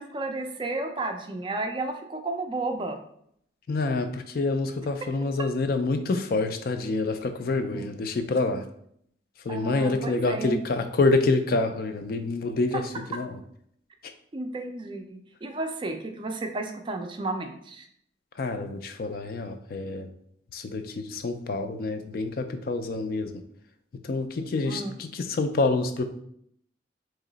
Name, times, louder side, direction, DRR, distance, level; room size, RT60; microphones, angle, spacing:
voice 1, 0.0-3.0 7.6-7.9 9.5-10.6 14.3-17.9 24.7-24.9, right 2 dB, 25° right, 5 dB, 0.3 m, -32 dB
voice 2, 3.7-8.7 9.4-13.4 14.0-14.1 18.4-20.1 20.5-23.4 23.9-26.1, left 3 dB, 50° left, 8 dB, 0.3 m, -27 dB
3.0 x 2.9 x 3.9 m, 0.68 s
head